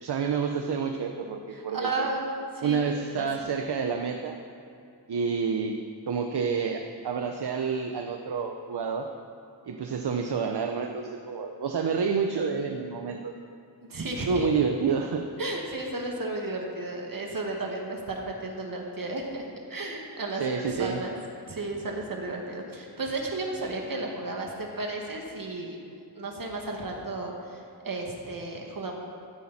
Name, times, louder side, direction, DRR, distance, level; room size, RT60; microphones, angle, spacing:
voice 1, 0.0-2.1 2.6-4.4 5.1-5.8 6.1-9.1 9.7-13.3 14.3-15.3 20.3-21.0, right 5 dB, 70° right, 5 dB, 0.8 m, -29 dB
voice 2, 1.5-3.5 13.8-14.7 15.4-19.4 19.7-21.1 21.5-25.8 26.1-29.0, right 2 dB, 50° right, 0 dB, 2.0 m, -33 dB
13.5 x 13.0 x 4.3 m, 2.5 s
wide cardioid pair, 115°, 41 cm